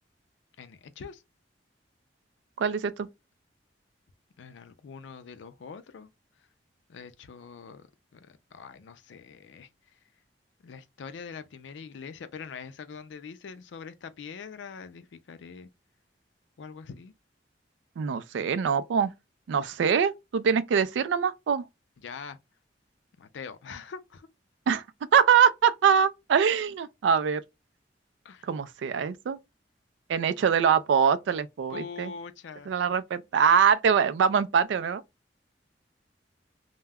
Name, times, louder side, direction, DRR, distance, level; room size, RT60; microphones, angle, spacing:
voice 1, 0.6-1.2 4.4-6.1 6.9-9.7 10.6-15.7 16.6-17.1 22.0-22.4 23.2-24.3 28.2-28.5 31.7-32.7, left 5 dB, 85° left, 0.4 m, -43 dB
voice 2, 2.6-3.1 18.0-19.1 19.5-21.6 24.7-24.8 25.1-27.4 28.4-29.4 30.1-32.1 32.7-35.0, right 7 dB, 80° right, 0.3 m, -23 dB
2.2 x 2.0 x 3.4 m
head